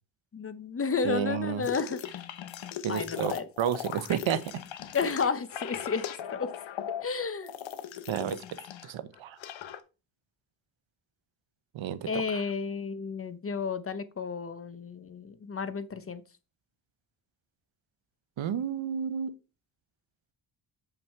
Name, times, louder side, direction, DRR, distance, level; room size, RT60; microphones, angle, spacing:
voice 1, 0.3-2.0 2.9-3.5 4.9-6.5 7.0-7.5 12.1-16.2, left 5 dB, 30° left, 0.7 m, -32 dB
voice 2, 1.0-1.7 2.8-4.6 8.1-9.4 11.7-12.4 18.4-19.3, right 9 dB, 85° right, 0.9 m, -31 dB
sound 1, 1.6-8.9 9.2-9.8, left 10 dB, 80° left, 1.0 m, -38 dB
7.3 x 5.6 x 4.5 m
wide cardioid pair, 155°, 46 cm